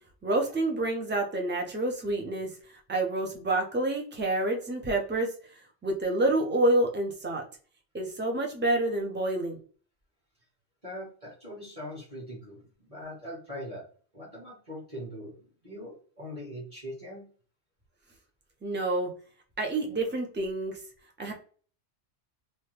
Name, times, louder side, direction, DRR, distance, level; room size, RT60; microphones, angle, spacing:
voice 1, 0.2-2.5 2.9-5.3 5.8-7.4 7.9-9.6 18.6-19.1 19.6-20.8 21.2-21.3, right 2 dB, 15° right, 2 dB, 0.3 m, -28 dB
voice 2, 10.8-13.9 14.1-17.3, equal, 30° right, -4 dB, 1.2 m, -41 dB
2.8 x 2.2 x 3.2 m, 0.41 s
omnidirectional pair, 1.2 m